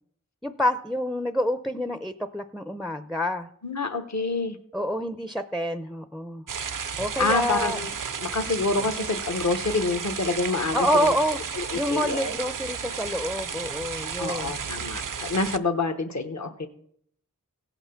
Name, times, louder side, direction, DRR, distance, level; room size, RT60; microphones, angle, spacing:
voice 1, 0.4-3.5 4.7-6.4 7.0-7.8 8.8-8.9 10.7-11.4 11.7-14.5, equal, ahead, 10 dB, 0.5 m, -27 dB
voice 2, 3.6-4.6 7.2-7.9 8.2-11.1 11.5-12.3 14.2-16.7, left 3 dB, 60° left, 7 dB, 1.1 m, -27 dB
sound 1, 6.5-15.6, right 6 dB, 80° right, 0.6 m, -33 dB
16.5 x 5.8 x 5.7 m, 0.65 s
wide cardioid pair, 50°, 32 cm